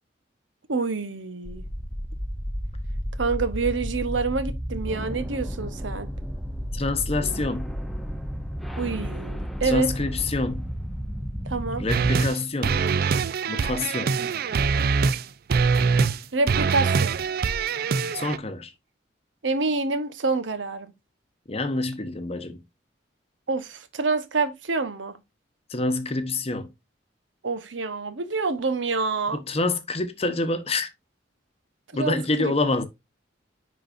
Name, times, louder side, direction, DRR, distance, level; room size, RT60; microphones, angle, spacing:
voice 1, 0.7-1.6 3.2-6.1 8.8-9.9 11.4-11.8 14.2-14.3 16.3-17.1 19.4-20.9 23.5-25.2 27.4-29.4 31.9-32.5, right 4 dB, 85° right, 1.0 m, -27 dB
sound 1, 1.4-12.1, equal, ahead, 0.6 m, -32 dB
voice 2, 6.7-7.7 9.6-10.7 11.8-12.9 13.5-14.2 18.1-18.7 21.5-22.6 25.7-26.7 29.3-30.9 31.9-32.8, left 2 dB, 35° left, 0.9 m, -27 dB
sound 2, 11.9-12.4 12.6-15.2 15.5-16.2 16.5-18.4, right 5 dB, 55° right, 0.4 m, -23 dB
10.0 x 4.0 x 2.5 m
head